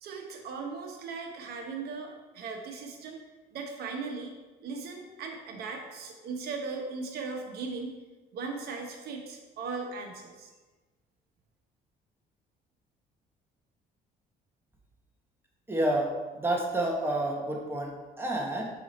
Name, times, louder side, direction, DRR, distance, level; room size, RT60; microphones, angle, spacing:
voice 1, 0.0-3.2 3.5-4.3 4.6-7.9 8.3-10.5, right 4 dB, 70° right, 3 dB, 1.1 m, -38 dB
voice 2, 15.7-18.7, right 1 dB, 15° right, 0 dB, 1.3 m, -29 dB
5.1 x 4.7 x 4.3 m, 1.2 s
cardioid pair, 110°, 17 cm